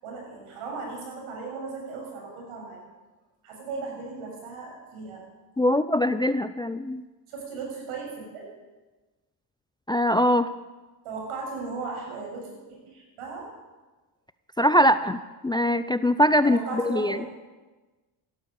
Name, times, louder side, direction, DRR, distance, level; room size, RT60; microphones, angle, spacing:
voice 1, 0.0-2.8 3.4-5.2 7.3-8.5 11.0-13.5 16.4-17.2, right 4 dB, 75° right, 0 dB, 6.9 m, -37 dB
voice 2, 5.6-7.0 9.9-10.5 14.6-15.2 15.4-17.2, equal, 10° left, 13 dB, 0.4 m, -22 dB
15.5 x 12.0 x 7.1 m, 1.2 s
supercardioid pair, 80°, 49 cm